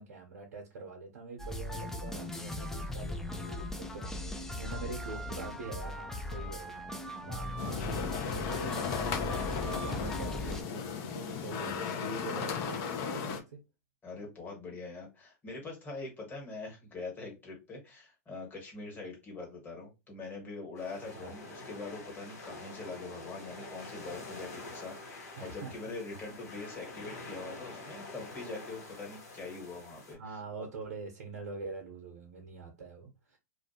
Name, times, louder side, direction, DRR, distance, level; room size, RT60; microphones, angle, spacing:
voice 1, 0.0-6.9 7.2-13.6 21.1-21.3 25.4-26.2 30.1-33.4, right 4 dB, 75° right, 0.7 m, -44 dB
sound 1, 1.4-10.6, left 1 dB, 5° left, 0.3 m, -38 dB
sound 2, 7.6-13.4, left 6 dB, 45° left, 0.6 m, -35 dB
voice 2, 14.0-30.4, left 3 dB, 20° left, 1.4 m, -43 dB
sound 3, 20.8-30.1, left 2 dB, 80° left, 1.1 m, -46 dB
2.5 x 2.2 x 2.7 m
hypercardioid pair, 115°, 9 cm